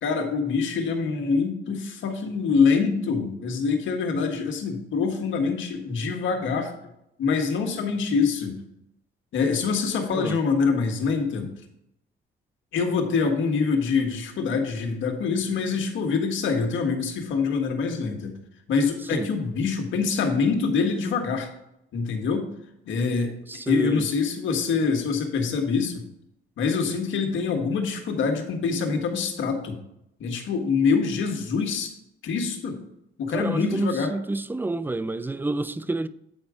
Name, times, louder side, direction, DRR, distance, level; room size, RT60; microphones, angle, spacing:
voice 1, 0.0-6.7 7.2-8.6 9.3-11.5 12.7-18.3 18.7-21.5 21.9-22.5 22.8-23.4 23.7-26.0 26.6-29.8 30.2-31.9 32.2-32.8 33.2-34.1, left 5 dB, 75° left, 1.6 m, -25 dB
voice 2, 23.5-24.1 33.3-36.1, right 2 dB, 10° right, 0.4 m, -29 dB
8.8 x 4.7 x 5.0 m
cardioid pair, 90°, 20 cm